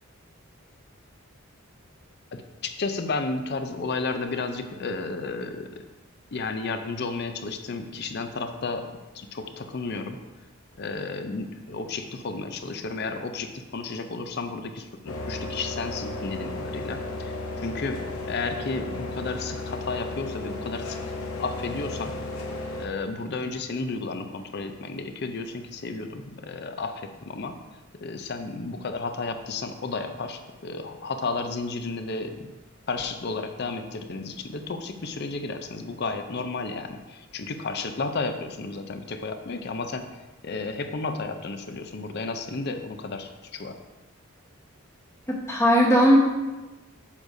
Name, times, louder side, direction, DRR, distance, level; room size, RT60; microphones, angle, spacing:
voice 1, 2.3-5.7 6.3-8.9 9.1-10.2 10.8-17.3 17.6-21.0 21.4-22.2 22.8-27.6 28.0-32.5 32.9-43.8, left 3 dB, 50° left, 7 dB, 0.5 m, -32 dB
sound 1, 15.1-22.9, left 2 dB, 85° left, 0.8 m, -34 dB
voice 2, 45.3-46.2, equal, 15° left, -2 dB, 1.0 m, -18 dB
8.4 x 6.5 x 2.6 m, 1.1 s
head